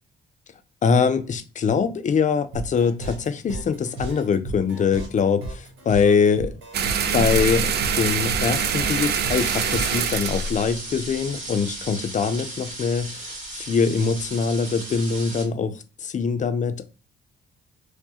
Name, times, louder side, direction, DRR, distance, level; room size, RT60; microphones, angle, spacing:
voice 1, 0.8-6.5 7.1-13.2 13.5-16.9, left 5 dB, 40° left, 10 dB, 0.5 m, -23 dB
sound 1, 2.5-10.1, right 2 dB, 80° right, 1.3 m, -35 dB
sound 2, 6.7-11.7, right 6 dB, 55° right, 0.5 m, -25 dB
sound 3, 9.3-15.4, right 2 dB, 40° right, 1.9 m, -36 dB
4.6 x 2.1 x 2.8 m, 0.35 s
cardioid pair, 90°, 20 cm